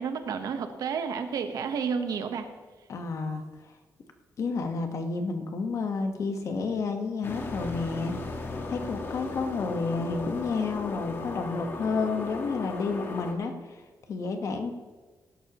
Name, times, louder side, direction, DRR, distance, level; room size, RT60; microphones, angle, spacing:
voice 1, 0.0-2.5, right 6 dB, 75° right, 8 dB, 1.1 m, -31 dB
voice 2, 2.9-3.4 4.4-8.1 8.7-13.8 14.1-14.7, left 4 dB, 55° left, 6 dB, 1.2 m, -30 dB
sound 1, 7.2-13.3, left 3 dB, 35° left, 1.4 m, -36 dB
17.5 x 12.0 x 3.0 m, 1.3 s
wide cardioid pair, 155°, 6 cm